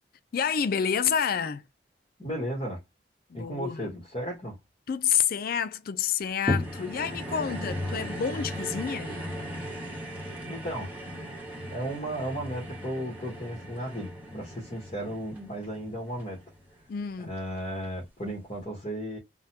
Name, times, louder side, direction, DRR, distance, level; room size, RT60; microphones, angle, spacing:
voice 1, 0.3-1.6 3.3-3.9 4.9-9.2 16.9-17.3, left 7 dB, 55° left, 0.4 m, -28 dB
voice 2, 2.2-2.8 3.3-4.6 10.5-10.9 11.7-16.4 17.2-19.2, equal, 35° left, 1.2 m, -34 dB
sound 1, 6.5-17.0 17.6-17.7, equal, 10° right, 1.1 m, -36 dB
3.6 x 2.1 x 2.8 m
head